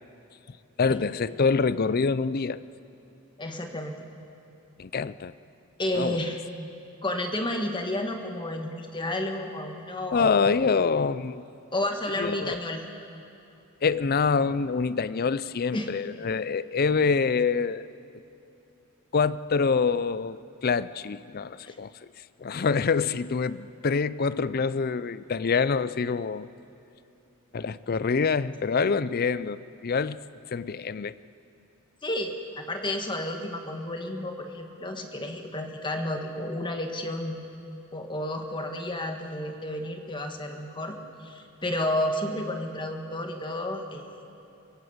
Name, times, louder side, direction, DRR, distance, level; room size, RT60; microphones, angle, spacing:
voice 1, 0.8-2.6 4.8-5.3 5.9-6.3 10.1-11.4 12.2-12.6 13.8-17.9 19.1-21.9 22.4-26.5 27.5-30.2 30.5-31.1, left 5 dB, 45° left, 16 dB, 0.5 m, -26 dB
voice 2, 3.4-4.1 5.8-6.4 7.0-10.4 11.7-12.8 15.7-15.9 21.6-21.7 32.0-37.4 37.9-44.1, left 1 dB, 20° left, 4 dB, 1.6 m, -31 dB
24.5 x 16.5 x 8.0 m, 2.9 s
head